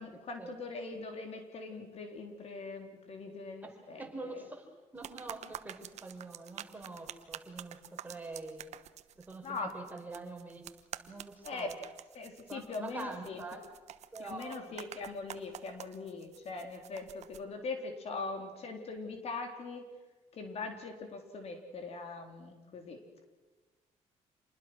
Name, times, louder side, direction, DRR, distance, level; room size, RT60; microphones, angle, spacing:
voice 1, 0.0-4.4 9.4-9.7 11.4-11.7 12.1-13.4 14.2-19.9 20.3-23.2, left 3 dB, 55° left, 5 dB, 3.7 m, -41 dB
voice 2, 3.6-4.7 4.9-8.8 9.1-11.8 12.5-13.6 14.1-15.0, right 3 dB, 15° right, 3 dB, 4.7 m, -45 dB
sound 1, 5.0-17.4, right 11 dB, 65° right, 1.1 m, -48 dB
27.5 x 20.0 x 6.3 m, 1.3 s
cardioid pair, 100°, 12 cm